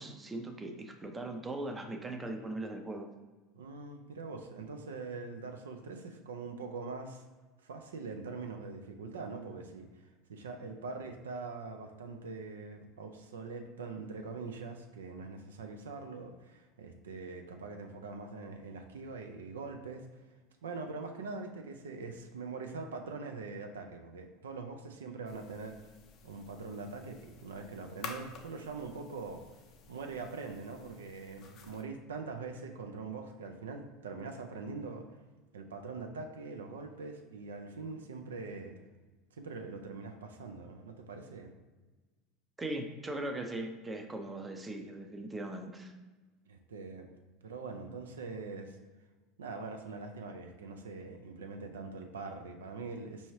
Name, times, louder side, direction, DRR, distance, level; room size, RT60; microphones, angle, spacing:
voice 1, 0.0-3.1 42.6-45.9, right 1 dB, 20° right, 5 dB, 0.5 m, -39 dB
voice 2, 3.5-7.2 7.6-20.3 20.6-25.9 26.2-29.4 29.9-35.1 35.5-38.8 39.3-41.5 46.5-47.1 47.4-48.8 49.4-53.3, right 4 dB, 85° right, 5 dB, 0.4 m, -43 dB
sound 1, 25.2-31.8, left 5 dB, 50° left, 0.5 m, -51 dB
4.5 x 2.7 x 3.0 m, 1.3 s
hypercardioid pair, 85°, 0 cm